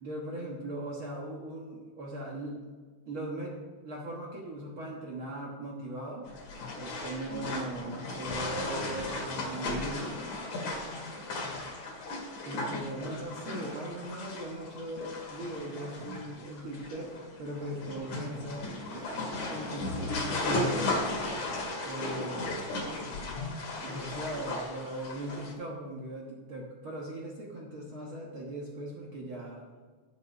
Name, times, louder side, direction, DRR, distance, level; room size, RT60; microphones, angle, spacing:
voice 1, 0.0-2.7 3.1-3.5 3.8-6.3 6.8-10.2 11.0-11.6 12.4-21.1 21.8-22.7 23.8-29.6, right 1 dB, 55° right, -3 dB, 1.6 m, -39 dB
sound 1, 6.3-25.5, left 2 dB, 65° left, 3.4 m, -36 dB
9.2 x 8.1 x 5.8 m, 1.5 s
omnidirectional pair, 3.7 m